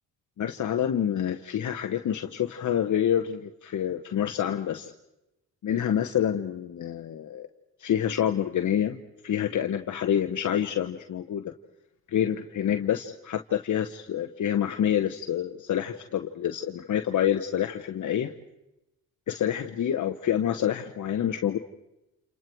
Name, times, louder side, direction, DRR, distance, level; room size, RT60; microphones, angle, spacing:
voice 1, 0.4-4.9 5.6-7.5 7.8-11.5 12.1-18.4 19.3-21.6, left 10 dB, 55° left, 5 dB, 1.2 m, -27 dB
29.0 x 28.5 x 4.6 m, 0.91 s
cardioid pair, 75°, 35 cm